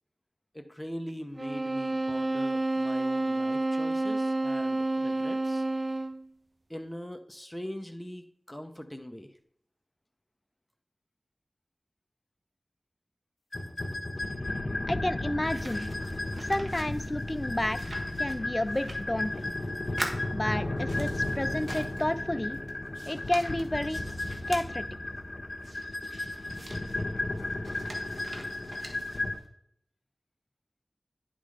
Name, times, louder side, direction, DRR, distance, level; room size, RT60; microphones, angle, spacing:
voice 1, 0.5-5.6 6.7-9.3, equal, 10° left, 6 dB, 0.9 m, -41 dB
sound 1, 1.4-6.3, right 2 dB, 50° right, 0.5 m, -29 dB
sound 2, 13.5-29.4, left 2 dB, 55° left, 1.3 m, -34 dB
voice 2, 14.9-15.9 16.5-17.8 18.2-19.5 20.3-22.6 23.1-24.0 24.5-24.8, left 1 dB, 25° left, 11 dB, 0.5 m, -31 dB
sound 3, 15.4-19.6 19.8-22.2 22.5-24.7 25.6-29.4, right 1 dB, 70° right, 1.2 m, -44 dB
10.5 x 3.8 x 4.9 m, 0.67 s
wide cardioid pair, 70°, 0 cm